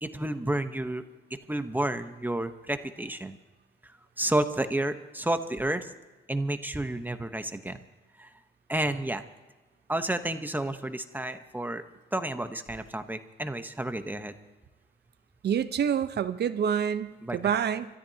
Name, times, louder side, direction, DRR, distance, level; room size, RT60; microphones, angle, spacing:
voice 1, 0.0-1.0 1.3-3.4 4.2-5.9 6.3-7.8 8.2-8.3 8.7-9.2 9.9-11.8 12.1-14.3 17.2-17.4, right 1 dB, 10° right, 8 dB, 1.0 m, -31 dB
voice 2, 15.4-17.9, right 8 dB, 55° right, 11 dB, 0.9 m, -27 dB
26.0 x 14.0 x 2.9 m, 1.2 s
cardioid pair, 90°, 20 cm